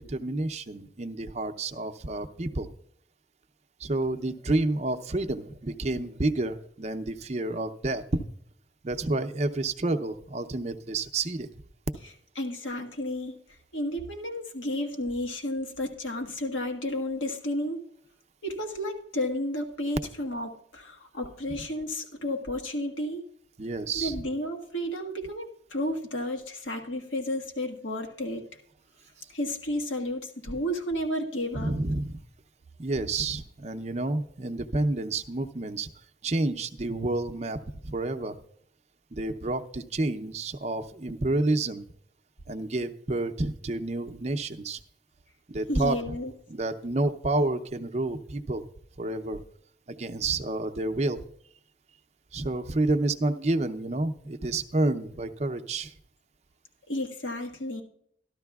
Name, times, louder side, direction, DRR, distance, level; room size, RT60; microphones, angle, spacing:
voice 1, 0.0-2.7 3.8-8.0 8.8-11.5 23.6-24.2 31.5-32.2 32.8-35.9 36.2-38.3 39.1-41.8 42.5-44.8 45.5-46.1 46.5-48.6 49.0-49.4 49.9-51.2 52.3-55.9, right 2 dB, 35° right, 8 dB, 0.6 m, -29 dB
voice 2, 12.4-13.4 13.7-17.9 18.4-23.2 23.9-28.4 29.3-31.7 45.7-46.3 56.9-57.8, left 1 dB, 80° left, 3 dB, 1.4 m, -32 dB
14.0 x 12.0 x 2.3 m, 0.68 s
head